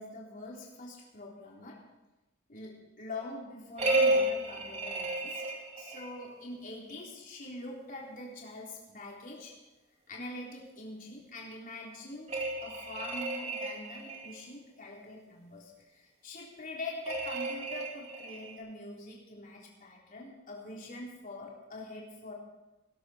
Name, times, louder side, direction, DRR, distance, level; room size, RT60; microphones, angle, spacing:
voice 1, 0.0-1.8 2.5-5.4 5.8-9.5 10.1-22.3, left 2 dB, 45° left, -3 dB, 3.6 m, -44 dB
sound 1, 3.8-6.2 12.3-14.4 17.1-18.6, right 2 dB, 35° right, 2.5 m, -32 dB
20.0 x 12.0 x 4.4 m, 1.0 s
head